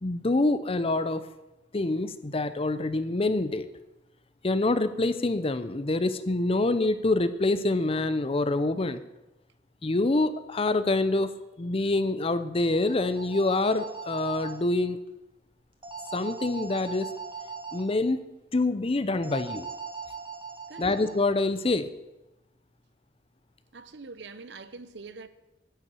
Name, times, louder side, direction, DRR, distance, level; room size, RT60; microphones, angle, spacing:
voice 1, 0.0-1.3 1.7-3.7 4.4-9.0 9.8-15.0 16.1-17.1 17.7-19.7 20.8-21.9, left 2 dB, 35° left, 0.6 m, -26 dB
sound 1, 12.6-14.6 15.8-17.8 19.2-21.2, right 5 dB, 30° right, 1.8 m, -40 dB
voice 2, 23.7-25.3, right 4 dB, 70° right, 0.7 m, -44 dB
10.5 x 7.0 x 8.3 m
head